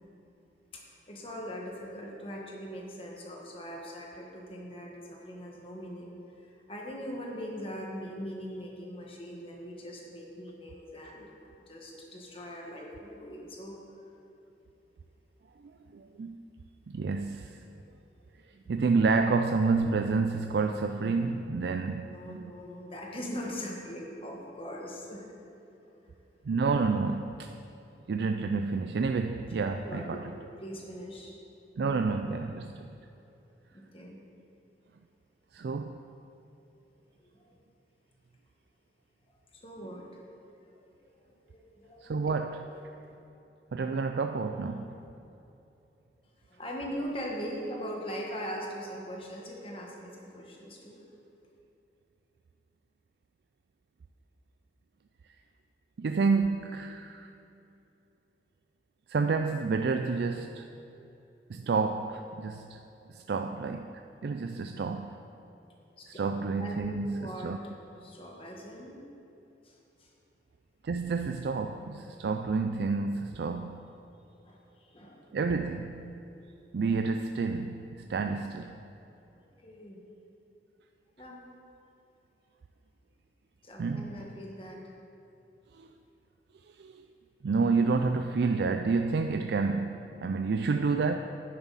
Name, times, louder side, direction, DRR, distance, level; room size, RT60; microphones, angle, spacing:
voice 1, 0.7-13.8 22.0-25.3 25.8-26.1 29.8-30.3 30.6-31.3 33.7-34.2 37.2-37.5 39.5-40.2 40.8-42.1 42.6-43.0 46.5-51.0 66.0-66.1 66.6-67.7 68.0-69.0 69.6-70.1 74.4-75.3 79.6-80.0 81.2-81.4 83.6-84.8, equal, 30° left, -1 dB, 1.5 m, -41 dB
voice 2, 15.6-16.4 16.9-17.6 18.7-22.5 26.4-27.5 28.1-30.3 31.8-32.9 35.5-36.0 42.0-42.7 43.7-45.0 56.0-57.3 59.1-60.7 61.5-62.8 63.1-65.2 66.1-67.6 70.8-73.9 75.3-76.0 76.7-78.8 83.8-84.2 85.8-85.9 86.8-87.1 87.4-91.2, right 4 dB, 70° right, 6 dB, 0.4 m, -29 dB
10.5 x 10.0 x 4.1 m, 2.9 s
head